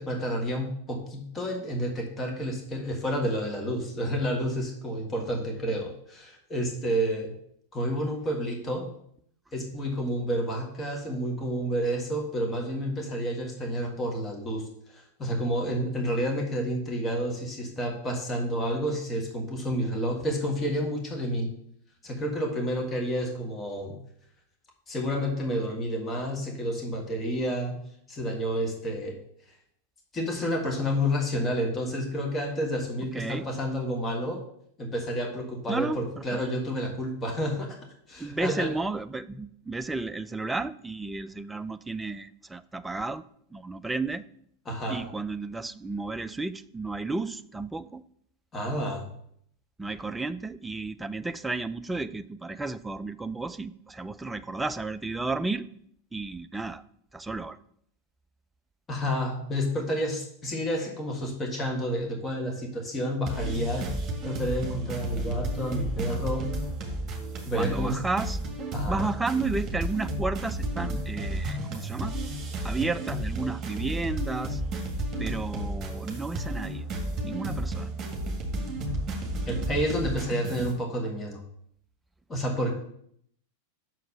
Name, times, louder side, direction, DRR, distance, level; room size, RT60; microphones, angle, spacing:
voice 1, 0.0-7.3 7.7-8.9 9.5-21.5 22.0-24.0 24.9-27.7 28.1-29.2 30.1-34.4 34.8-37.8 38.1-38.8 44.6-45.0 48.5-49.1 58.9-63.9 64.2-66.5 67.4-68.0 68.7-69.1 79.5-81.4 82.3-82.7, equal, 20° left, 1 dB, 1.6 m, -30 dB
voice 2, 33.1-33.4 35.7-36.4 38.2-43.2 43.5-44.2 44.9-48.0 49.8-55.7 56.1-56.8 57.1-57.6 67.5-68.4 68.9-72.1 72.6-74.6 75.2-76.8 77.2-77.9, right 3 dB, 10° right, 12 dB, 0.4 m, -32 dB
sound 1, 63.3-80.7, right 1 dB, 25° right, 1.9 m, -32 dB
6.1 x 4.7 x 6.5 m, 0.67 s
figure-of-eight pair, 90°, 0 cm